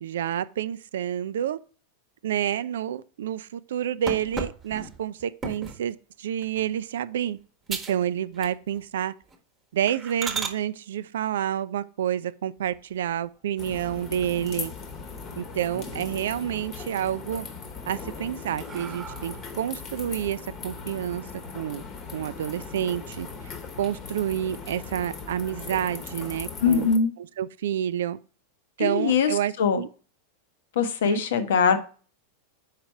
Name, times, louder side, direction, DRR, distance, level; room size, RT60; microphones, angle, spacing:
voice 1, 0.0-1.6 2.2-7.4 7.7-9.1 9.7-14.7 15.4-17.5 17.9-21.2 21.5-21.8 22.1-23.3 23.8-26.9 27.4-28.2 28.8-29.9 31.0-31.2, right 10 dB, 60° right, 0.3 m, -29 dB
sound 1, 4.1-5.9 6.4-6.7 7.2-7.3 7.7-8.0 8.3-8.9 9.2-9.4 9.9-10.6 12.6-13.3 13.7-13.8 14.2-14.3 14.6-15.4 15.8-16.4 16.8-17.4 17.9-19.6, right 4 dB, 20° right, 1.0 m, -36 dB
sound 2, 13.6-27.0, left 5 dB, 30° left, 1.0 m, -39 dB
voice 2, 26.6-27.1 28.8-29.3 29.6-29.8 30.8-31.8, left 6 dB, 60° left, 0.8 m, -22 dB
5.0 x 4.8 x 4.5 m
figure-of-eight pair, 90°, 0 cm